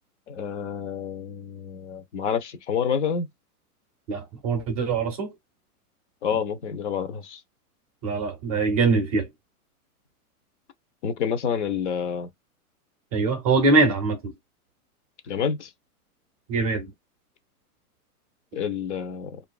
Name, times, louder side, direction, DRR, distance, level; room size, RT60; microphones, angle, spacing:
voice 1, 0.3-3.3 6.2-7.4 11.0-12.3 15.3-15.7 18.5-19.4, left 7 dB, 50° left, 0.7 m, -28 dB
voice 2, 4.1-5.3 8.0-9.3 13.1-14.3 16.5-16.9, right 3 dB, 25° right, 0.6 m, -23 dB
2.6 x 2.5 x 2.3 m
hypercardioid pair, 160°, 45 cm